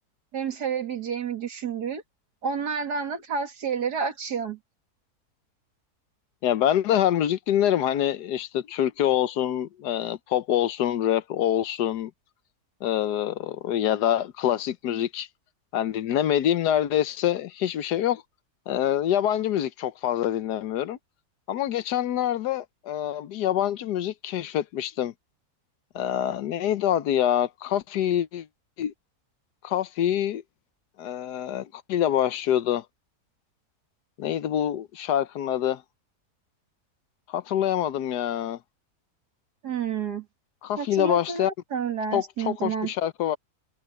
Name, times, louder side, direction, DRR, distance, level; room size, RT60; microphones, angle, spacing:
voice 1, 0.3-2.0 2.4-4.6 39.6-40.3 40.8-42.9, right 6 dB, 85° right, 2.6 m, -30 dB
voice 2, 6.4-12.1 12.8-15.3 15.7-18.2 18.7-21.0 21.5-25.1 25.9-28.5 28.8-28.9 29.6-30.4 31.0-32.8 34.2-35.8 37.3-38.6 40.6-41.5 42.1-43.4, left 11 dB, 90° left, 1.4 m, -25 dB
omnidirectional pair, 1.7 m